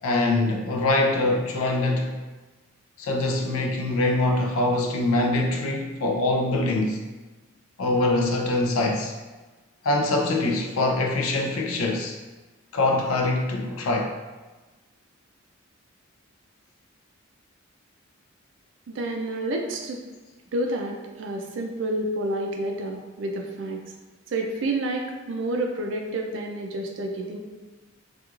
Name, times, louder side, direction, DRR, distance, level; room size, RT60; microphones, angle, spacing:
voice 1, 0.0-2.1 3.0-7.0 7.8-9.1 9.8-12.2 12.7-14.1, left 2 dB, 85° left, 2 dB, 0.4 m, -24 dB
voice 2, 18.9-20.0 20.5-23.8 24.3-27.4, right 1 dB, 60° right, 2 dB, 0.4 m, -29 dB
3.0 x 2.4 x 2.3 m, 1.2 s
head